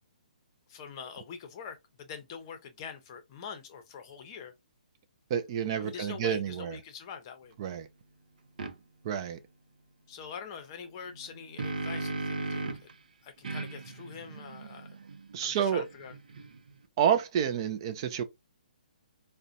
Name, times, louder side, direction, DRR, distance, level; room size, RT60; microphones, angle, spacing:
voice 1, 0.7-4.5 5.8-7.5 10.1-12.7 13.2-15.0 15.4-16.1, left 6 dB, 30° left, 0.7 m, -44 dB
voice 2, 5.3-6.8 7.6-7.9 9.0-9.4 15.3-15.8 17.0-18.2, right 8 dB, 35° right, 0.3 m, -29 dB
sound 1, 8.6-8.7 11.1-12.9 13.4-16.8, right 3 dB, 75° right, 0.6 m, -37 dB
3.8 x 2.1 x 2.5 m
hypercardioid pair, 155°, 5 cm